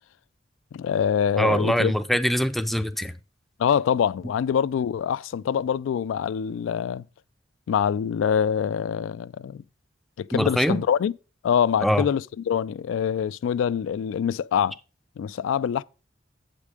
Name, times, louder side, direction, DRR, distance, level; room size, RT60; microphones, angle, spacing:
voice 1, 0.7-1.9 3.6-7.0 7.7-9.6 10.2-11.1 11.4-14.8 15.2-15.8, left 8 dB, 90° left, 0.3 m, -25 dB
voice 2, 1.4-3.1 10.3-10.8 11.8-12.0, equal, ahead, 0.4 m, -23 dB
8.2 x 5.2 x 4.9 m
head